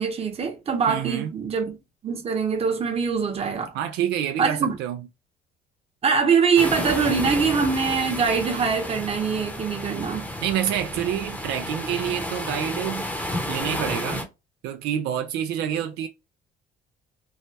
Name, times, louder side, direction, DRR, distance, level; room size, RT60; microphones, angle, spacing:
voice 1, 0.0-1.8 2.0-3.7 4.4-4.7 6.0-10.3, right 5 dB, 35° right, 0.9 m, -23 dB
voice 2, 0.9-1.3 3.7-5.1 10.4-13.1 13.5-14.3 14.6-16.1, right 10 dB, 85° right, 0.5 m, -27 dB
sound 1, 6.6-14.2, left 1 dB, 10° left, 0.8 m, -31 dB
3.2 x 2.2 x 2.7 m
cardioid pair, 110°, 17 cm